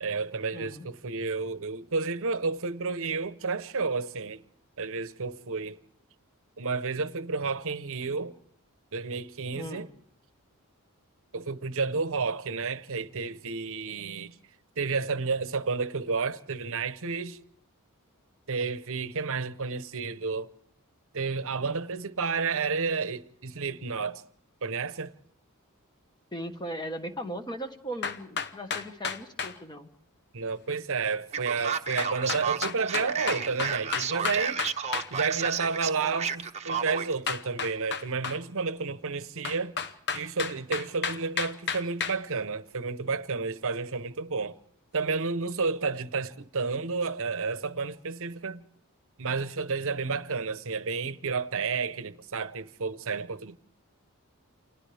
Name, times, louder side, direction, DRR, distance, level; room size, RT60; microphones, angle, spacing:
voice 1, 0.0-4.4 4.8-5.8 6.6-8.4 8.9-9.9 11.3-14.4 14.8-17.4 18.5-20.5 21.1-24.2 24.6-25.1 30.3-34.6 35.1-39.8 40.1-44.6 44.9-48.6 49.2-53.6, right 4 dB, 65° right, 0.9 m, -31 dB
voice 2, 0.5-0.9 9.6-9.9 26.3-29.9, equal, 20° left, 1.4 m, -38 dB
sound 1, 28.0-29.6 32.0-35.1 37.3-38.4 39.5-42.2, left 6 dB, 50° left, 1.0 m, -32 dB
Male speech man speaking, 31.3-37.1, right 6 dB, 30° right, 0.9 m, -32 dB
29.0 x 26.0 x 3.5 m
head